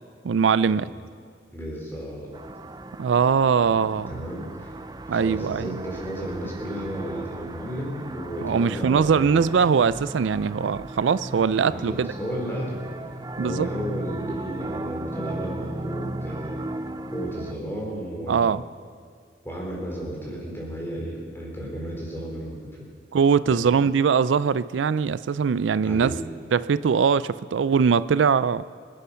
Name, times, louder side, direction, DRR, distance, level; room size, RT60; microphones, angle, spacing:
voice 1, 0.2-0.9 3.0-4.1 5.1-5.7 8.4-12.1 13.4-13.7 18.3-18.6 23.1-26.1 26.5-28.6, right 6 dB, 90° right, 16 dB, 0.4 m, -21 dB
voice 2, 1.5-2.3 4.1-4.7 5.1-9.3 11.7-12.8 13.4-16.7 17.1-18.4 19.4-22.6 23.5-23.6 25.8-26.2, equal, 15° left, -2 dB, 4.0 m, -33 dB
sound 1, 2.3-17.5, right 1 dB, 20° right, 0.4 m, -36 dB
25.0 x 10.0 x 5.7 m, 2.1 s
head